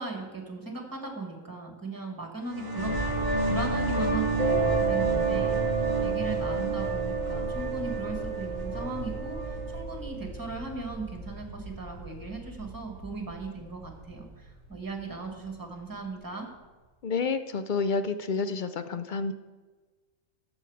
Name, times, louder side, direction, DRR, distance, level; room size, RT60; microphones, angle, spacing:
voice 1, 0.0-2.9 3.2-16.5, right 3 dB, 15° right, 2 dB, 1.7 m, -38 dB
sound 1, 2.4-9.8, right 2 dB, 35° right, 1.6 m, -31 dB
sound 2, 2.8-16.1, right 2 dB, 40° left, 3.2 m, -38 dB
Mallet percussion, 4.4-10.8, right 5 dB, 75° left, 2.5 m, -31 dB
voice 2, 17.0-19.3, left 4 dB, 60° left, 10 dB, 0.5 m, -29 dB
12.5 x 7.2 x 4.8 m, 1.3 s
omnidirectional pair, 1.4 m